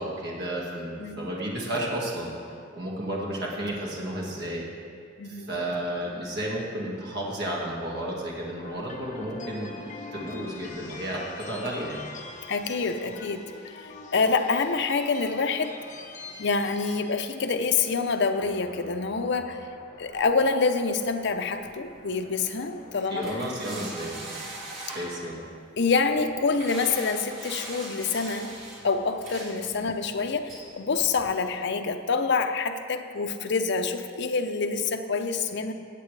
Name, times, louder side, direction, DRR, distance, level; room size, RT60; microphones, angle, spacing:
voice 1, 0.0-2.3 2.7-4.6 5.2-9.8 10.1-12.1 23.1-24.4 24.9-25.4, right 1 dB, 55° right, -3 dB, 1.9 m, -32 dB
voice 2, 5.2-5.5 12.5-15.8 16.4-19.6 20.0-23.4 25.8-28.6 28.8-35.7, left 4 dB, 60° left, 6 dB, 0.7 m, -27 dB
sound 1, 8.6-24.8, left 3 dB, 40° left, 1.0 m, -45 dB
sound 2, 20.8-31.3, right 2 dB, 85° right, 3.2 m, -43 dB
17.5 x 8.2 x 3.3 m, 2.2 s
head